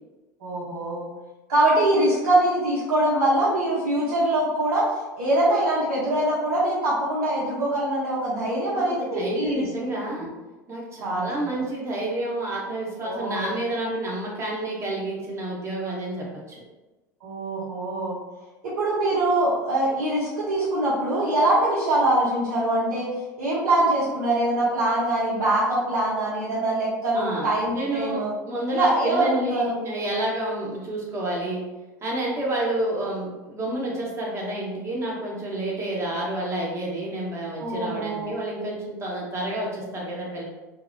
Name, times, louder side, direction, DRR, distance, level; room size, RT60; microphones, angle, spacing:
voice 1, 0.4-1.1 1.5-9.7 10.1-10.3 11.0-11.3 13.0-13.5 17.2-18.2 18.6-23.1 23.4-28.3 28.7-29.8 37.6-38.3, right 1 dB, 70° right, -9 dB, 0.8 m, -23 dB
voice 2, 8.7-10.3 10.7-16.6 27.1-27.5 27.7-28.2 28.5-31.6 32.0-40.4, right 1 dB, 25° right, -4 dB, 0.9 m, -29 dB
2.8 x 2.0 x 2.5 m, 1.2 s
figure-of-eight pair, 75°, 10 cm